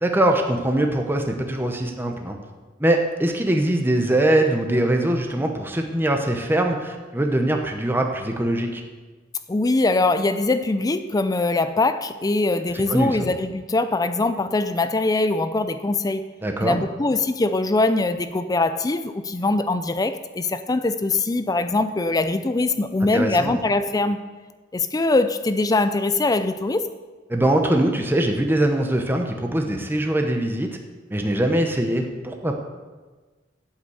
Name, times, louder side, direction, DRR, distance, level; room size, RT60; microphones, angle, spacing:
voice 1, 0.0-2.4 2.8-8.8 12.7-13.3 16.4-16.8 23.1-23.6 27.3-30.8 31.1-32.5, right 1 dB, 10° right, 3 dB, 0.9 m, -22 dB
voice 2, 9.5-16.3 16.6-24.2 24.7-26.9, left 2 dB, 20° left, 11 dB, 0.4 m, -22 dB
8.7 x 8.1 x 8.0 m, 1.3 s
head